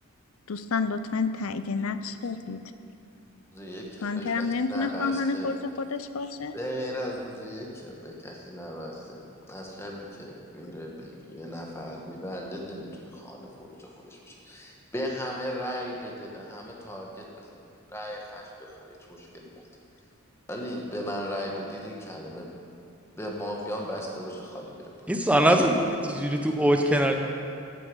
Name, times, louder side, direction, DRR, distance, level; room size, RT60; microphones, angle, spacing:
voice 1, 0.5-2.6 4.0-6.6, left 4 dB, 80° left, 11 dB, 0.5 m, -29 dB
voice 2, 3.5-5.5 6.5-19.5 20.5-22.5 23.2-24.9, equal, 10° left, -1 dB, 1.3 m, -37 dB
voice 3, 25.1-27.2, right 1 dB, 5° right, 3 dB, 0.7 m, -22 dB
14.0 x 6.9 x 5.3 m, 2.5 s
head